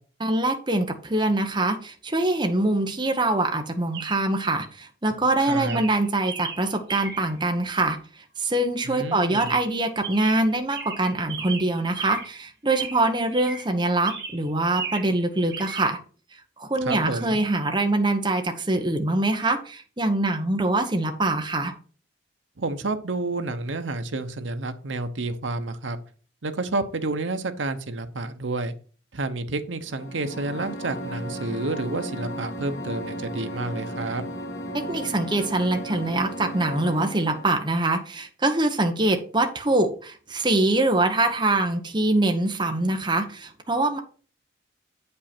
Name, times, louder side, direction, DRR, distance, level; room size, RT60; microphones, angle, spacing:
voice 1, 0.2-8.0 8.4-16.0 16.6-21.7 34.9-44.0, right 2 dB, 25° right, 5 dB, 1.0 m, -24 dB
Chirp tweet, 1.2-1.3 3.9-4.4 5.1-5.3 5.7-7.4 9.3-9.8 10.0-12.4 12.7-13.8 14.1-15.2 15.5-15.9, right 5 dB, 60° right, 2.0 m, -36 dB
voice 2, 5.5-5.8 8.8-9.5 16.8-17.4 22.6-26.0 26.4-28.7 29.1-34.2, right 2 dB, 85° right, 8 dB, 0.9 m, -30 dB
sound 1, 29.8-37.6, equal, 80° left, 2.1 m, -35 dB
8.8 x 5.4 x 4.4 m, 0.40 s
head